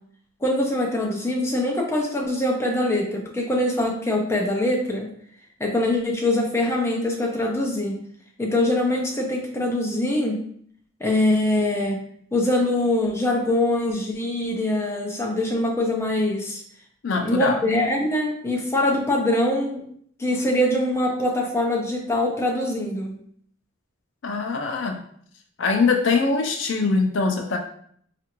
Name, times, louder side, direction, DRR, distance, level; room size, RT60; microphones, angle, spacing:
voice 1, 0.4-5.1 5.6-8.0 8.4-10.4 11.0-12.0 12.3-16.6 17.1-19.8 20.2-23.1, left 1 dB, 15° left, 0 dB, 0.5 m, -23 dB
voice 2, 17.0-17.6 24.2-25.0 25.6-27.6, left 4 dB, 60° left, 4 dB, 0.4 m, -22 dB
4.2 x 2.4 x 2.9 m, 0.62 s
head